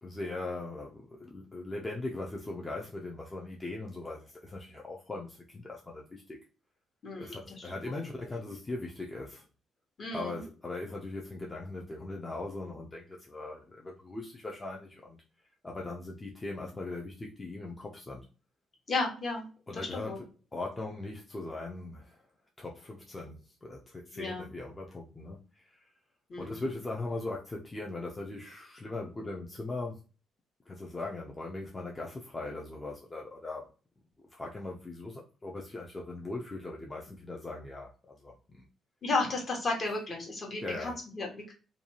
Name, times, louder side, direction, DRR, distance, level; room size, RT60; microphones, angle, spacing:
voice 1, 0.0-6.4 7.2-9.4 10.1-15.2 15.6-18.3 19.7-22.2 22.6-25.9 26.4-30.0 30.7-33.6 34.3-38.7 40.6-41.0, left 2 dB, 25° left, -1 dB, 0.5 m, -40 dB
voice 2, 7.0-7.4 7.9-8.0 10.0-10.4 18.9-19.5 19.7-20.2 24.1-24.5 26.3-26.6 39.0-41.5, left 3 dB, 50° left, 0 dB, 1.1 m, -33 dB
2.6 x 2.3 x 2.8 m, 0.35 s
supercardioid pair, 70°, 0 cm